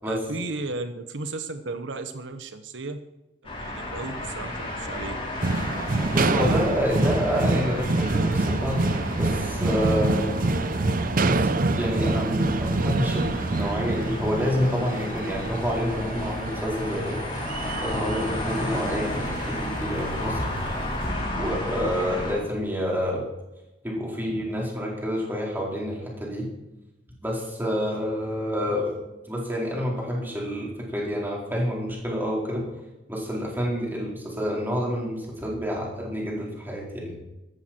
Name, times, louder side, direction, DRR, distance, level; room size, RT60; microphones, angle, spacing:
voice 1, 0.0-3.0 3.4-5.2, right 3 dB, 80° right, 9 dB, 1.0 m, -34 dB
sound 1, 3.4-22.3, left 1 dB, 30° left, 4.4 m, -33 dB
sound 2, 5.4-20.7, right 2 dB, 50° right, 0.7 m, -27 dB
voice 2, 6.1-10.4 11.2-17.2 17.8-20.4 21.4-23.2 23.8-26.5 27.2-28.9 29.3-32.6 33.1-37.1, equal, 10° right, -3 dB, 4.5 m, -28 dB
14.5 x 14.0 x 4.5 m, 0.97 s
head